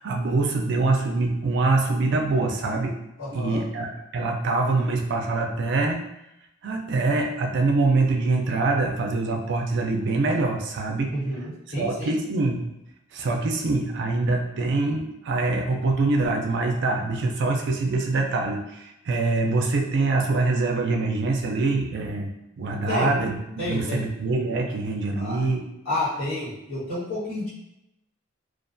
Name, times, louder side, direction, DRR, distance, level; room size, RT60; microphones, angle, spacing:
voice 1, 0.0-2.9 3.3-6.0 6.6-11.1 11.8-12.7 13.1-22.3 22.6-25.6, right 3 dB, 60° right, 2 dB, 0.4 m, -24 dB
voice 2, 3.2-3.7 11.1-12.1 22.9-23.1 23.6-24.1 25.1-25.4 25.8-27.5, left 1 dB, 80° left, -10 dB, 1.4 m, -30 dB
2.3 x 2.2 x 2.5 m, 0.86 s
head